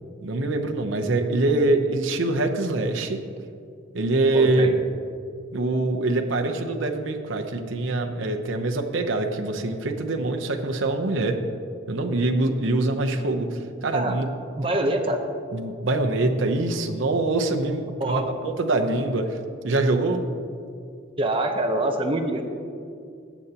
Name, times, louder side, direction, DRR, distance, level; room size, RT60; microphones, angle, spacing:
voice 1, 0.2-3.2 3.9-4.7 5.5-11.4 11.9-14.3 15.5-19.4 19.6-20.2, right 2 dB, 70° right, 4 dB, 0.8 m, -24 dB
voice 2, 4.3-4.7 13.9-14.1 14.6-15.2 18.0-18.3 21.2-22.4, right 1 dB, 25° right, 3 dB, 0.8 m, -25 dB
14.5 x 8.1 x 2.9 m, 2.4 s
head